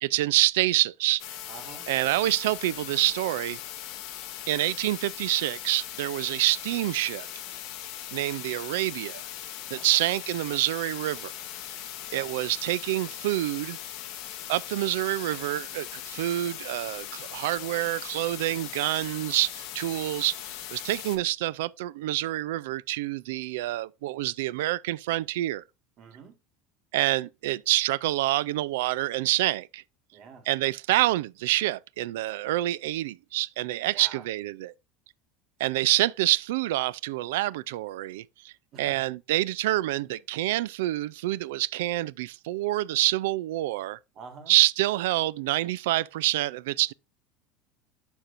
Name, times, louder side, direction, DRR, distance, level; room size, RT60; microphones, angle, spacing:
voice 1, 0.0-1.2 1.9-3.6 4.5-7.3 8.1-9.2 9.7-11.3 12.1-13.8 14.5-25.6 26.9-29.8 30.5-34.7 35.6-44.0 44.5-46.9, right 16 dB, 90° right, 0.3 m, -27 dB
sound 1, 1.2-21.2, left 12 dB, 50° left, 1.2 m, -39 dB
voice 2, 1.5-1.9 9.7-9.9 12.1-12.4 26.0-26.4 30.1-30.5 33.9-34.2 38.7-39.1 44.1-44.5, right 5 dB, 35° right, 1.7 m, -46 dB
11.5 x 4.4 x 2.5 m
cardioid pair, 165°, 0 cm